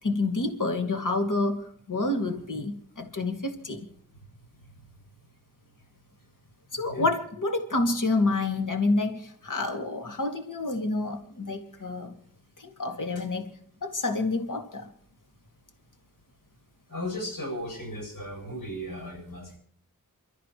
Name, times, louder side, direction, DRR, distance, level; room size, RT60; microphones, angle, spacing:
voice 1, 0.0-3.9 6.7-12.1 12.6-13.5 13.8-14.9, left 2 dB, 65° left, 4 dB, 2.3 m, -28 dB
voice 2, 16.9-19.6, left 1 dB, 85° left, 1 dB, 7.9 m, -36 dB
28.5 x 13.0 x 3.1 m, 0.68 s
wide cardioid pair, 50°, 33 cm